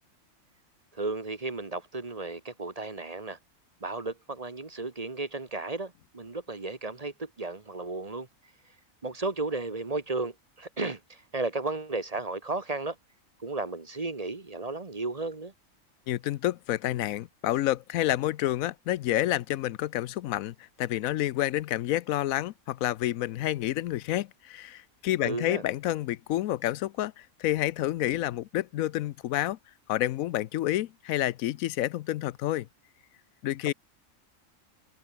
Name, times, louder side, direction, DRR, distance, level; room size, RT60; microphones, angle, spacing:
voice 1, 0.9-3.4 3.8-8.3 9.0-13.0 13.4-15.5 25.2-25.6 33.6-33.7, right 3 dB, 30° right, 1.2 m, -34 dB
voice 2, 16.1-29.6 29.9-32.7 33.4-33.7, left 14 dB, 90° left, 1.0 m, -29 dB
omnidirectional pair, 1.4 m